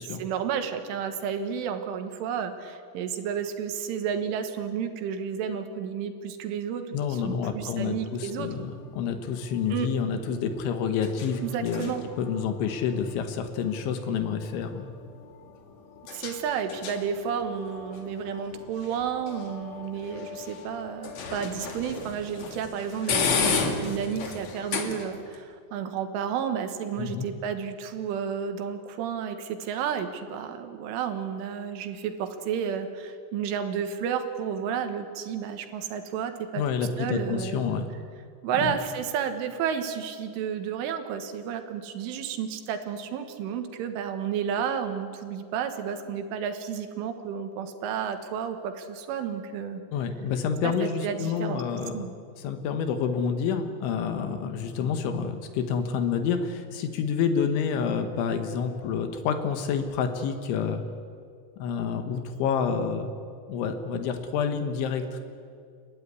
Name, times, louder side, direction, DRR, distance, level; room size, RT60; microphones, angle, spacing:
voice 1, 0.0-6.8 7.1-8.5 9.7-9.9 11.4-12.0 16.1-36.6 37.0-37.8 38.4-49.8 50.6-51.6 51.9-52.1, right 7 dB, 80° right, 7 dB, 3.8 m, -31 dB
voice 2, 6.9-11.9 12.2-14.9 27.0-27.3 36.6-37.9 38.6-38.8 49.9-52.1 52.4-60.8 61.6-63.1 63.5-65.2, left 6 dB, 75° left, 7 dB, 3.6 m, -28 dB
sound 1, 7.9-25.4, left 5 dB, 55° left, 2.0 m, -35 dB
30.0 x 14.0 x 9.8 m, 2.3 s
omnidirectional pair, 5.8 m